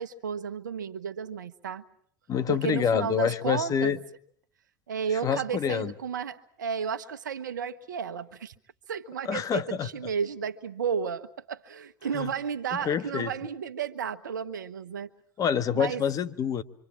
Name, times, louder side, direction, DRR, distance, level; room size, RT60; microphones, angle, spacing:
voice 1, 0.0-1.8 2.5-4.0 4.9-8.5 8.9-15.1 15.7-16.0, right 6 dB, 85° right, 12 dB, 1.2 m, -33 dB
voice 2, 2.3-4.0 5.2-5.9 9.2-9.9 12.1-12.3 12.8-13.3 15.4-16.6, left 7 dB, 35° left, 13 dB, 1.5 m, -27 dB
26.5 x 25.0 x 7.4 m, 0.64 s
hypercardioid pair, 90°, 10 cm